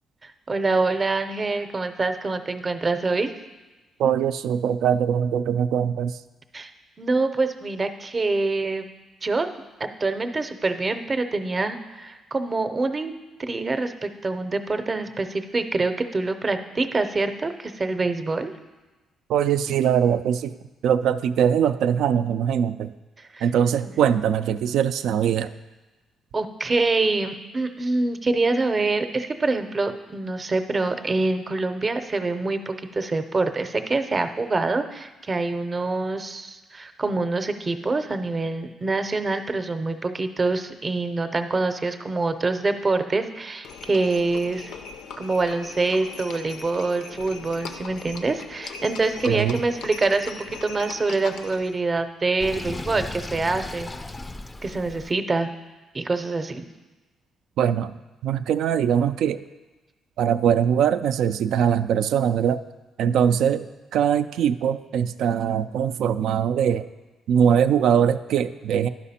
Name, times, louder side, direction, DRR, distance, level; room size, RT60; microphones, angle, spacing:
voice 1, 0.2-3.3 6.5-6.7 7.0-8.9 9.2-9.5 9.8-13.1 13.4-18.5 23.2-23.4 23.8-23.9 26.3-44.7 45.2-53.9 54.6-55.5 55.9-56.6, right 3 dB, 30° right, 8 dB, 0.6 m, -25 dB
voice 2, 4.0-6.2 19.3-20.6 20.8-22.9 23.4-25.5 49.3-49.6 57.6-57.9 58.2-59.4 60.2-62.6 63.0-63.7 63.9-66.9 67.3-68.9, right 8 dB, 80° right, 12 dB, 0.3 m, -22 dB
Livestock farm animals working animals, 43.6-51.7, left 5 dB, 85° left, 0.5 m, -39 dB
Sink (filling or washing), 52.4-55.1, left 2 dB, 20° left, 0.4 m, -36 dB
11.0 x 5.1 x 4.2 m, 1.2 s
cardioid pair, 90°, 0 cm